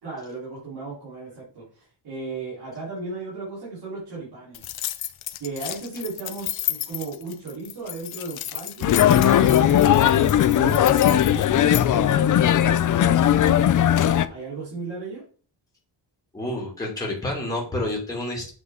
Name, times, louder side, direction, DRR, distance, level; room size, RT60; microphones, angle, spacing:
voice 1, 0.0-4.7 5.4-15.2, right 3 dB, 55° right, -7 dB, 3.7 m, -36 dB
sound 1, 4.5-11.9, left 13 dB, 85° left, 0.8 m, -33 dB
sound 2, 8.8-14.2, left 10 dB, 45° left, 0.4 m, -18 dB
voice 2, 16.3-18.5, left 1 dB, 10° left, -3 dB, 2.3 m, -29 dB
7.9 x 5.8 x 3.7 m, 0.41 s
wide cardioid pair, 170°, 45 cm